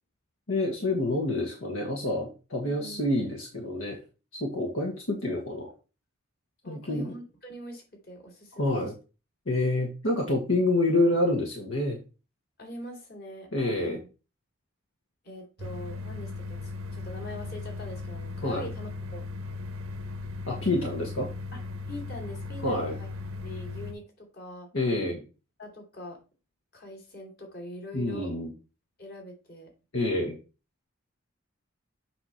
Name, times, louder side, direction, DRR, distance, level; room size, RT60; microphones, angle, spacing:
voice 1, 0.5-4.0 4.4-5.7 6.7-7.1 8.6-8.9 9.5-12.0 13.5-14.0 18.4-18.7 20.5-21.3 22.6-22.9 24.7-25.2 27.9-28.5 29.9-30.4, left 2 dB, 75° left, 1 dB, 1.5 m, -27 dB
voice 2, 2.6-3.1 6.6-8.9 12.6-14.0 15.2-19.2 20.6-20.8 21.5-21.6 21.9-23.1 23.4-24.7 25.6-26.2 26.7-28.3 29.0-29.7, equal, 45° left, 1 dB, 2.8 m, -43 dB
sound 1, 15.6-23.9, left 3 dB, 80° right, 0.9 m, -37 dB
7.8 x 3.0 x 5.7 m, 0.31 s
head